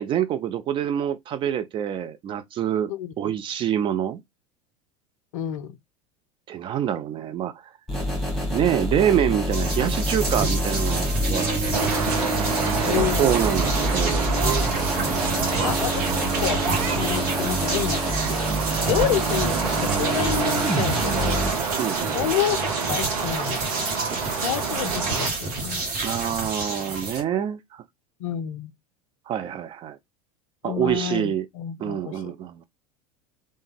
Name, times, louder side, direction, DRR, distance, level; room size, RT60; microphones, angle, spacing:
voice 1, 0.0-2.9 3.2-4.2 6.5-7.5 8.5-11.6 12.8-14.3 21.8-22.2 26.0-27.8 29.3-30.0 30.6-31.5 31.8-32.6, right 10 dB, 30° right, 0.3 m, -26 dB
voice 2, 2.9-3.3 5.3-5.8 12.8-13.4 15.6-16.6 17.0-18.0 18.8-21.5 22.1-23.9 24.4-25.8 28.2-28.7 30.6-32.3, left 11 dB, 60° left, 0.4 m, -29 dB
sound 1, 7.9-21.5, equal, ahead, 1.4 m, -27 dB
sound 2, 9.5-27.2, right 3 dB, 45° right, 1.2 m, -29 dB
sound 3, 11.7-25.3, right 6 dB, 70° right, 0.6 m, -28 dB
3.1 x 2.2 x 3.1 m
figure-of-eight pair, 75°, 19 cm